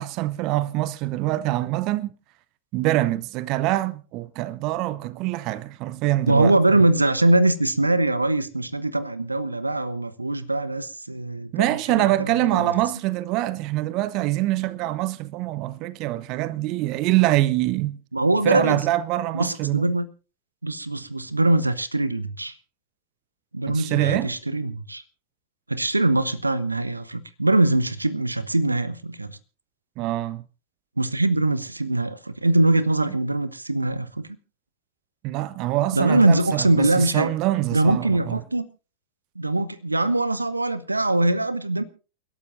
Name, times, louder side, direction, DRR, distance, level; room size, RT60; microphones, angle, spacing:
voice 1, 0.0-2.1 2.7-6.6 11.5-18.0 18.4-19.9 23.7-24.3 30.0-30.4 35.2-38.4, right 16 dB, 40° right, 0.7 m, -24 dB
voice 2, 6.3-12.7 18.1-18.8 19.3-20.1 20.6-22.5 23.5-25.0 25.7-29.4 31.0-34.3 35.9-37.3 37.7-38.6 39.4-41.8, right 2 dB, 80° right, 0.9 m, -22 dB
29.0 x 12.0 x 2.6 m
figure-of-eight pair, 90°, 0 cm